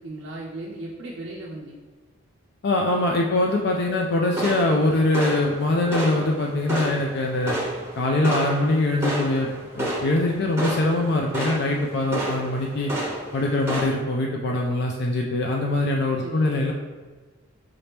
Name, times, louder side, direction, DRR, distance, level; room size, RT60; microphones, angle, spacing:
voice 1, 0.0-1.8 16.2-16.5, right 2 dB, 50° right, -4 dB, 0.4 m, -36 dB
voice 2, 2.6-7.6 8.0-9.5 9.7-12.9 13.3-16.7, left 2 dB, 50° left, 0 dB, 0.4 m, -23 dB
sound 1, 4.3-13.9, right 1 dB, 10° right, 0.8 m, -31 dB
5.0 x 2.9 x 3.4 m, 1.3 s
head